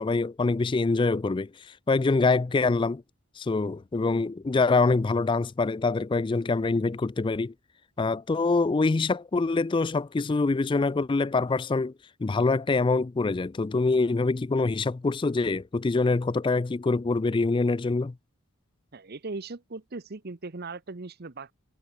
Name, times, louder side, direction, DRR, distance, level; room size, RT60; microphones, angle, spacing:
voice 1, 0.0-3.0 3.4-7.5 8.0-11.9 12.2-18.1, left 3 dB, 20° left, 0.3 m, -25 dB
voice 2, 18.9-21.5, right 3 dB, 45° right, 0.9 m, -38 dB
head